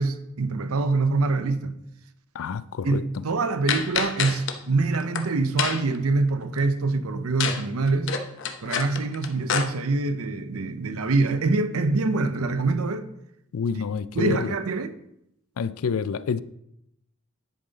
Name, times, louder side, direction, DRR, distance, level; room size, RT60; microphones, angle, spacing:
voice 1, 0.0-1.8 2.8-8.1 8.6-13.0 14.1-14.9, right 3 dB, 85° right, 0.7 m, -25 dB
voice 2, 2.3-3.0 13.5-14.5 15.6-16.4, left 6 dB, 75° left, 0.4 m, -28 dB
sound 1, 3.7-4.6 4.9-5.2 5.6-6.0 7.4-7.6 7.9-9.6, left 6 dB, 60° left, 0.8 m, -27 dB
10.0 x 5.5 x 4.0 m
head